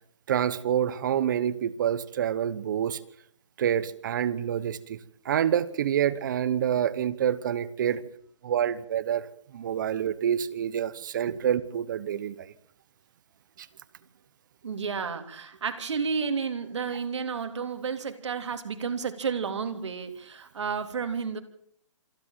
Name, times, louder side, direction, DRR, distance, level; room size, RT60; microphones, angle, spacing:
voice 1, 0.3-3.0 3.6-5.0 5.2-8.0 8.4-9.3 9.5-12.5, right 9 dB, 40° right, 17 dB, 1.1 m, -27 dB
voice 2, 14.6-21.4, right 5 dB, 65° right, 7 dB, 3.4 m, -31 dB
26.5 x 11.5 x 8.9 m, 0.65 s
hypercardioid pair, 165°, 16 cm